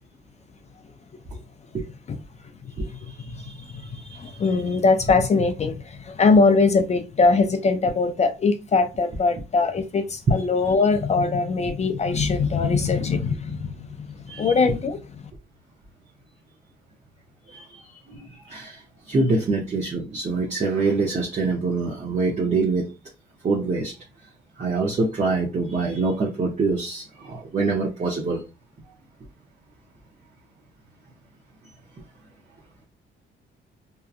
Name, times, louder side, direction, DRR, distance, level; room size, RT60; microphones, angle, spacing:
voice 1, 2.8-4.6 14.3-14.5 17.5-22.9 23.4-23.9 24.6-28.4, right 3 dB, 35° right, 0.7 m, -26 dB
voice 2, 4.2-14.1 14.4-15.0, left 4 dB, 35° left, 0.4 m, -21 dB
2.7 x 2.3 x 2.4 m
cardioid pair, 90°, 20 cm